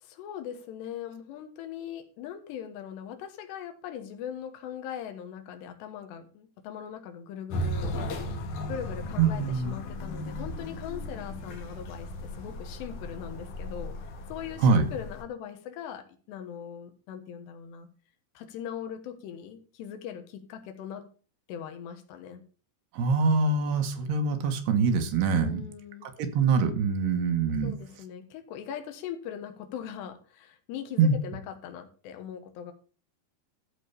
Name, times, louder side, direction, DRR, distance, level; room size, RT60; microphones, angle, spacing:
voice 1, 0.0-14.0 14.3-17.9 18.3-21.1 21.5-22.4 25.3-26.1 27.6-32.7, left 9 dB, 80° left, 7 dB, 3.4 m, -40 dB
sound 1, 7.5-15.2, left 1 dB, 55° left, 2.5 m, -36 dB
voice 2, 9.2-9.7 14.6-14.8 22.9-25.6 26.0-27.7 31.0-31.1, right 4 dB, 75° right, 7 dB, 3.2 m, -24 dB
13.5 x 4.7 x 6.8 m, 0.39 s
omnidirectional pair, 4.9 m